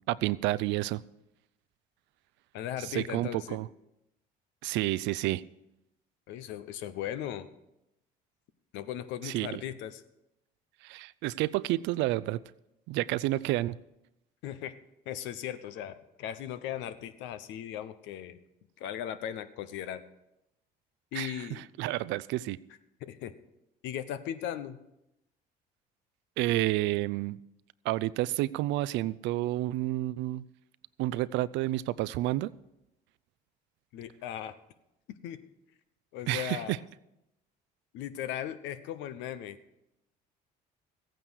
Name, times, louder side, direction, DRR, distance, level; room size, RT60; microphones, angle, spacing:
voice 1, 0.1-1.0 2.8-3.7 4.6-5.4 9.2-9.6 10.8-12.4 12.9-13.8 21.1-22.6 26.4-27.4 27.8-30.5 31.0-32.5 36.3-36.8, right 16 dB, 75° right, 18 dB, 0.5 m, -30 dB
voice 2, 2.5-3.6 6.3-7.5 8.7-10.0 14.4-14.7 15.1-18.4 18.8-20.0 21.1-21.6 23.0-23.3 23.8-24.8 33.9-34.5 35.2-35.4 36.1-36.8 37.9-39.6, left 10 dB, 75° left, 12 dB, 0.9 m, -37 dB
14.5 x 9.1 x 6.3 m, 0.87 s
supercardioid pair, 80°, 19 cm